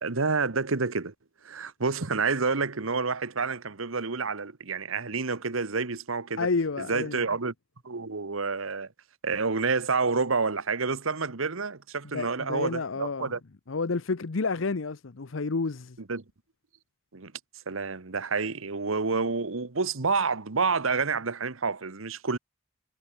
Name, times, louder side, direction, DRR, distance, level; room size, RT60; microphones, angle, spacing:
voice 1, 0.0-1.1 1.4-6.5 6.9-7.5 7.8-8.9 9.2-13.4 16.1-16.2 17.1-17.3 17.7-22.4, right 4 dB, 80° right, 1.3 m, -28 dB
voice 2, 6.4-7.2 12.1-13.3 13.7-16.0, left 4 dB, 70° left, 0.8 m, -30 dB
head